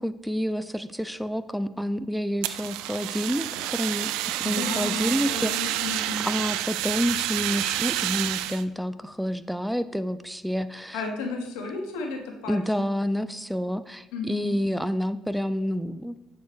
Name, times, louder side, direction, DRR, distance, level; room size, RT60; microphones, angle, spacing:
voice 1, 0.0-5.9 6.2-11.0 12.5-16.2, equal, ahead, 13 dB, 0.4 m, -29 dB
Fire, 2.4-8.6, right 13 dB, 75° right, 0.3 m, -29 dB
voice 2, 4.4-6.2 10.9-12.6 14.1-14.6, left 3 dB, 80° left, 2 dB, 1.2 m, -33 dB
8.8 x 4.5 x 3.4 m, 0.91 s
hypercardioid pair, 60°, 0 cm